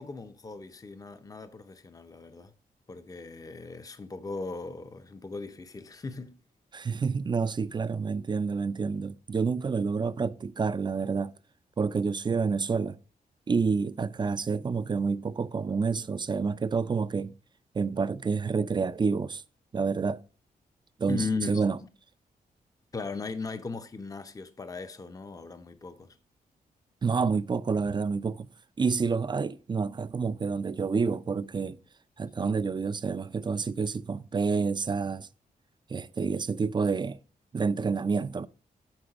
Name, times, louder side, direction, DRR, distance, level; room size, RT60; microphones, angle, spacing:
voice 1, 0.0-2.5 2.9-6.4 21.1-21.7 22.9-26.2, left 4 dB, 25° left, 0.6 m, -37 dB
voice 2, 6.7-11.3 11.8-13.0 13.5-17.4 17.7-19.4 19.7-20.2 21.0-21.8 27.0-28.5 28.8-31.8 32.2-35.3 35.9-37.2 37.5-38.5, right 5 dB, 30° right, 0.4 m, -28 dB
8.9 x 3.9 x 6.0 m
cardioid pair, 85°, 16 cm